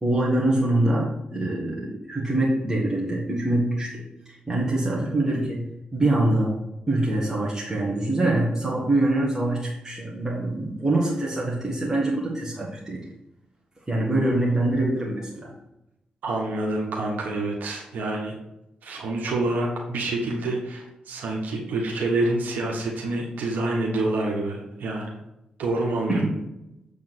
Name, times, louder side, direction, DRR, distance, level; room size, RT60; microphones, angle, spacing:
voice 1, 0.0-4.0 4.5-5.6 5.9-6.6 6.9-13.0 13.9-15.5 26.1-26.4, right 1 dB, 20° right, -5 dB, 1.8 m, -24 dB
voice 2, 16.2-18.3 18.8-25.2 25.6-26.2, right 2 dB, 80° right, -1 dB, 1.4 m, -27 dB
7.3 x 3.6 x 6.3 m, 0.89 s
cardioid pair, 75°, 3 cm